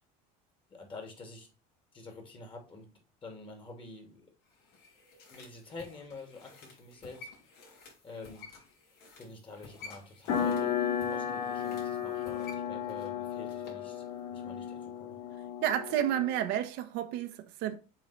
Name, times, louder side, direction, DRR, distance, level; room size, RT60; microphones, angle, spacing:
voice 1, 0.7-1.5 1.9-2.9 3.2-4.2 5.3-7.3 8.0-8.5 9.2-10.8 11.1-15.2, left 3 dB, 25° left, 2.9 m, -47 dB
sound 1, 4.5-13.9 14.2-14.3, left 4 dB, 60° left, 3.1 m, -53 dB
sound 2, 10.3-16.5, left 8 dB, 80° left, 2.0 m, -34 dB
voice 2, 15.6-17.8, right 11 dB, 65° right, 1.0 m, -31 dB
7.2 x 3.9 x 4.4 m
supercardioid pair, 115°, 19 cm